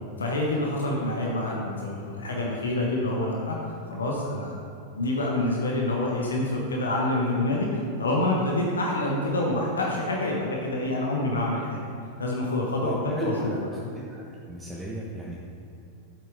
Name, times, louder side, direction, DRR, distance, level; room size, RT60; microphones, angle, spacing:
voice 1, 0.2-4.6 4.9-11.8 12.2-13.6, left 1 dB, 70° left, -2 dB, 1.3 m, -27 dB
voice 2, 12.8-13.6 14.1-15.4, right 1 dB, 15° right, -4 dB, 1.2 m, -35 dB
11.5 x 7.6 x 3.6 m, 2.6 s
figure-of-eight pair, 90°, 0 cm